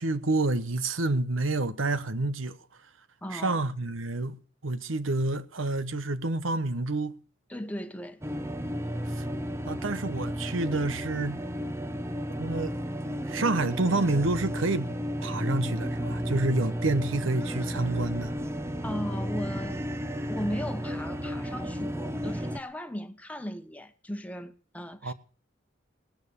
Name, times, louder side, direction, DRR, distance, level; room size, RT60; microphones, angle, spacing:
voice 1, 0.0-2.6 3.3-7.2 9.1-9.3 9.7-11.4 12.4-12.7 13.2-14.9 15.2-18.3 25.0-25.1, right 2 dB, 85° right, 1.1 m, -28 dB
voice 2, 3.2-3.6 7.5-8.2 18.8-19.8 20.3-25.1, equal, 5° left, 1.1 m, -37 dB
sound 1, 8.2-22.6, equal, 15° right, 0.7 m, -33 dB
18.5 x 9.5 x 6.9 m
head